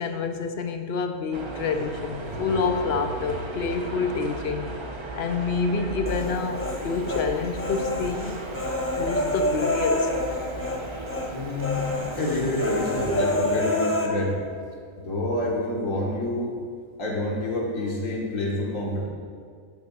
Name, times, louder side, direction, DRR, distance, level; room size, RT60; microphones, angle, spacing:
voice 1, 0.0-4.7 5.2-8.4 9.0-10.1, left 4 dB, 60° left, 7 dB, 0.7 m, -28 dB
sound 1, 1.3-13.4, right 2 dB, 30° right, 0.6 m, -36 dB
sound 2, 1.7-10.4, equal, 70° right, 2.8 m, -42 dB
Human voice, 6.1-7.3 7.6-10.8 11.1-11.3 11.6-14.1, left 1 dB, 10° left, 0.9 m, -27 dB
voice 2, 11.3-14.4 15.1-16.6 17.0-19.1, left 2 dB, 80° left, -3 dB, 1.9 m, -28 dB
7.7 x 6.8 x 5.3 m, 2.1 s
omnidirectional pair, 1.4 m